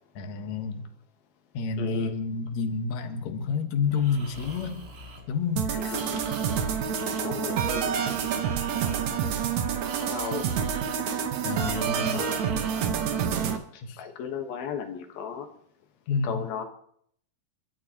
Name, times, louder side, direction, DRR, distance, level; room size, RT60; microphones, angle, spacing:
voice 1, 0.2-0.8 1.5-4.8 5.3-5.9 11.4-12.2 13.8-14.0 16.1-16.4, left 5 dB, 60° left, 5 dB, 2.4 m, -29 dB
voice 2, 1.8-2.2 5.8-6.2 7.2-7.9 10.0-10.5 12.1-12.4 13.7-15.5 16.2-16.6, left 8 dB, 85° left, 4 dB, 3.3 m, -35 dB
Breathing, 3.8-13.5, right 2 dB, 35° right, 2.2 m, -45 dB
sound 1, 5.6-13.6, right 7 dB, 65° right, 2.0 m, -28 dB
30.0 x 12.5 x 3.0 m, 0.66 s
omnidirectional pair, 4.1 m